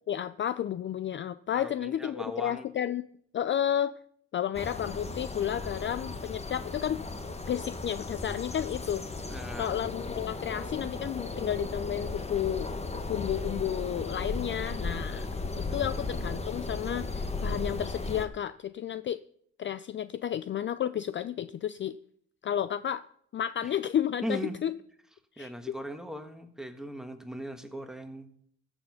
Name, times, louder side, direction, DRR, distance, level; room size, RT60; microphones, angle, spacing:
voice 1, 0.1-3.1 3.3-3.9 4.3-7.0 7.5-12.7 13.1-15.3 15.6-19.2 19.6-22.0 22.4-23.0 23.3-24.7 25.4-25.8, left 10 dB, 40° left, 15 dB, 0.4 m, -32 dB
voice 2, 1.5-2.7 9.3-9.8 23.6-23.7 24.2-24.6 25.4-28.3, equal, ahead, 6 dB, 1.5 m, -38 dB
sound 1, 4.5-18.3, left 3 dB, 20° left, 1.2 m, -36 dB
14.0 x 7.0 x 5.6 m, 0.66 s
cardioid pair, 90°, 30 cm